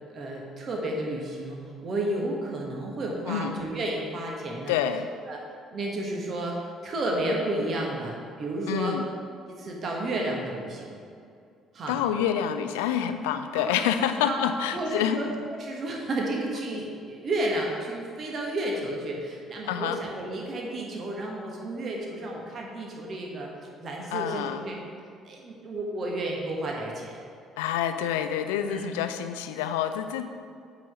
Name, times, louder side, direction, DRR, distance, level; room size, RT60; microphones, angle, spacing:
voice 1, 0.1-4.8 5.3-5.4 5.7-6.6 6.8-9.0 9.5-11.0 11.7-12.0 13.5-13.8 14.2-14.4 14.7-15.3 15.6-23.5 23.8-24.8 25.2-27.2 28.6-28.8, right 1 dB, 40° right, -1 dB, 1.4 m, -32 dB
voice 2, 3.3-3.6 4.7-5.1 8.7-9.1 11.9-15.2 16.7-16.8 19.7-20.0 24.1-24.6 27.6-30.2, left 9 dB, 70° left, 9 dB, 0.4 m, -27 dB
9.0 x 4.1 x 6.4 m, 2.4 s
figure-of-eight pair, 50°, 0 cm